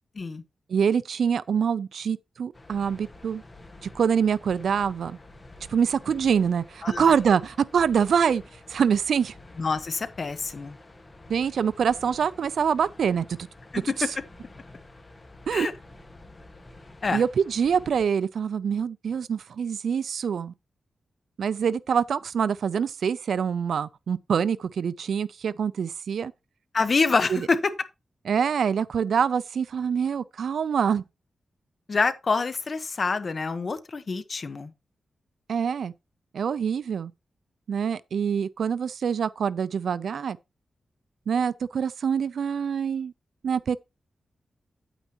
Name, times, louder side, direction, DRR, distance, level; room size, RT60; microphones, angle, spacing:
voice 1, 0.7-3.4 3.8-5.2 5.7-9.3 11.3-13.3 15.5-15.7 17.1-20.5 21.4-26.3 27.3-27.5 28.3-31.0 35.5-35.9 36.3-37.1 37.7-40.4 41.3-43.1 43.4-43.8, right 7 dB, 75° right, 0.4 m, -25 dB
sound 1, 2.5-18.1, left 2 dB, 25° left, 1.5 m, -49 dB
voice 2, 9.6-10.8 13.7-14.1 15.5-15.7 17.0-17.2 26.7-27.7 31.9-34.7, left 4 dB, 45° left, 1.0 m, -26 dB
9.2 x 9.0 x 2.9 m
wide cardioid pair, 105°, 0 cm